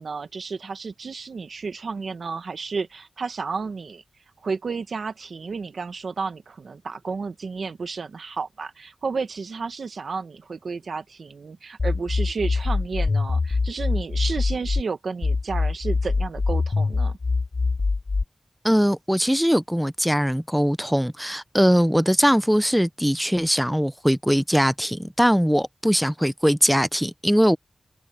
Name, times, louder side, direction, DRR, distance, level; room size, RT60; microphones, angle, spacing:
voice 1, 0.0-4.0 4.4-17.2, right 4 dB, 85° right, 1.1 m, -32 dB
sound 1, 11.8-14.8 15.2-18.2, left 3 dB, 50° left, 0.7 m, -23 dB
voice 2, 18.6-27.6, equal, ahead, 0.5 m, -21 dB
wide cardioid pair, 85°, 0 cm